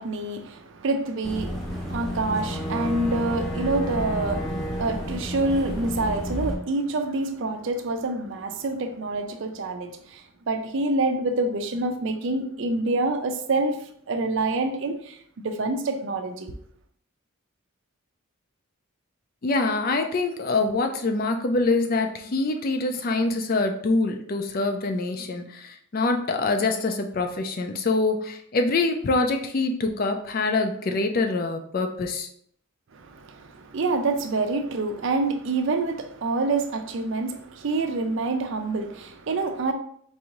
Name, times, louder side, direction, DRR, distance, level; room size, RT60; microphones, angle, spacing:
voice 1, 0.0-13.8 14.1-16.5 32.9-39.7, right 2 dB, 55° right, 7 dB, 0.4 m, -27 dB
Boat Water vehicle / Engine, 1.2-6.5, equal, ahead, 0.7 m, -30 dB
voice 2, 19.4-32.3, left 3 dB, 40° left, 6 dB, 0.4 m, -25 dB
4.7 x 2.6 x 2.9 m, 0.65 s
head